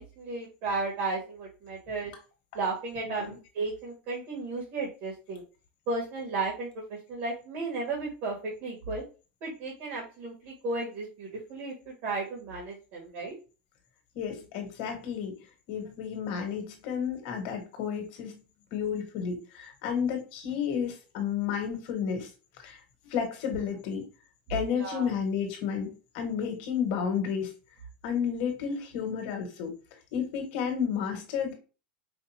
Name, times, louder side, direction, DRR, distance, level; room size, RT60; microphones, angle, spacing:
voice 1, 0.0-2.1 2.5-5.4 5.9-9.0 9.4-13.3 24.8-25.1, right 3 dB, 45° right, -3 dB, 1.9 m, -34 dB
voice 2, 3.0-3.4 14.1-15.4 15.7-18.3 18.7-22.3 22.6-22.8 23.1-24.0 24.5-27.5 28.0-29.7 30.1-31.5, left 7 dB, 50° left, 4 dB, 1.6 m, -31 dB
5.2 x 2.6 x 2.8 m, 0.33 s
supercardioid pair, 160°, 6 cm